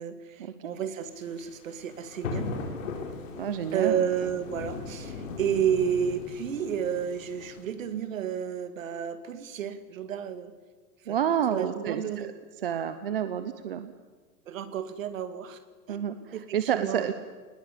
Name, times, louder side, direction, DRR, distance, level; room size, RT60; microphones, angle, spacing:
voice 1, 0.0-2.5 3.7-10.5 11.0-11.2 11.5-12.3 14.5-15.6 15.9-16.0 16.3-17.1, right 8 dB, 55° right, 11 dB, 2.1 m, -31 dB
sound 1, 1.1-7.6, left 4 dB, 55° left, 4.4 m, -38 dB
voice 2, 3.4-4.0 11.1-12.3 12.6-13.9 15.9-17.1, right 9 dB, 35° right, 10 dB, 0.8 m, -29 dB
21.5 x 20.0 x 8.4 m, 1.4 s
hypercardioid pair, 180°, 47 cm